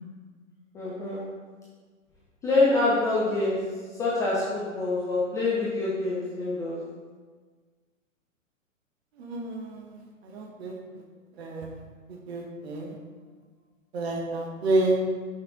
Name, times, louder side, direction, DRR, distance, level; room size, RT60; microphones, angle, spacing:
voice 1, 0.7-1.2 2.4-3.6 4.0-6.8, left 2 dB, 10° left, -7 dB, 0.4 m, -25 dB
voice 2, 9.3-9.8 10.3-10.7 11.4-11.7 12.3-12.8 13.9-15.0, right 2 dB, 50° right, 1 dB, 1.3 m, -28 dB
5.8 x 5.2 x 3.9 m, 1.5 s
figure-of-eight pair, 120°, 40 cm